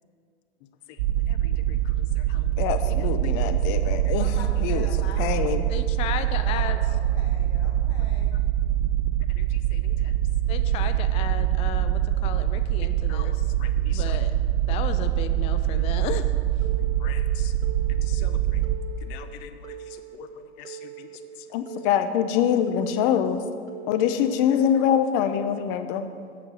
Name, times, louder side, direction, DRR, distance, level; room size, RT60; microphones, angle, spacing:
sound 1, 1.0-18.8, right 12 dB, 65° right, 0.6 m, -24 dB
voice 1, 2.3-4.3 4.6-4.9 5.2-5.6 9.4-9.5 9.7-9.8 13.1-14.2 17.0-17.5 18.1-18.6 19.0-19.7 20.2-20.3 20.6-21.1 21.5-23.4 23.9-26.1, left 9 dB, 50° left, 10 dB, 0.8 m, -26 dB
voice 2, 3.8-8.4, left 4 dB, 65° left, 2 dB, 1.8 m, -44 dB
voice 3, 5.7-6.8 10.5-13.5 13.9-14.3 14.7-16.3, left 9 dB, 20° left, 10 dB, 0.3 m, -34 dB
Telephone, 16.6-17.1 17.6-18.1 18.6-19.1 19.6-20.2 20.6-21.2 21.7-22.2 22.7-23.2 23.7-24.2, right 12 dB, 85° right, 1.0 m, -41 dB
8.5 x 6.8 x 5.5 m, 2.1 s
hypercardioid pair, 95°, 34 cm